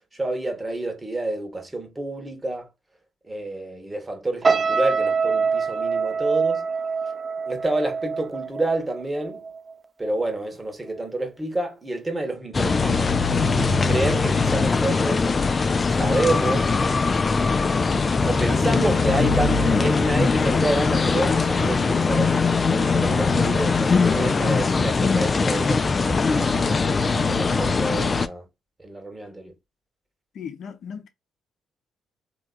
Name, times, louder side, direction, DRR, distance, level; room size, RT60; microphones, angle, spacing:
voice 1, 0.2-2.7 3.3-6.7 7.5-9.4 10.0-13.1 13.5-15.3 15.9-16.7 18.2-26.8 27.1-28.5 28.8-29.5, right 2 dB, 25° right, 1.5 m, -28 dB
sound 1, 4.4-9.7 10.1-10.4, right 5 dB, 40° right, 0.4 m, -25 dB
sound 2, 12.5-28.3, left 4 dB, 40° left, 0.4 m, -21 dB
voice 2, 30.3-31.1, left 7 dB, 65° left, 0.7 m, -36 dB
3.5 x 2.9 x 2.4 m
hypercardioid pair, 50°, 0 cm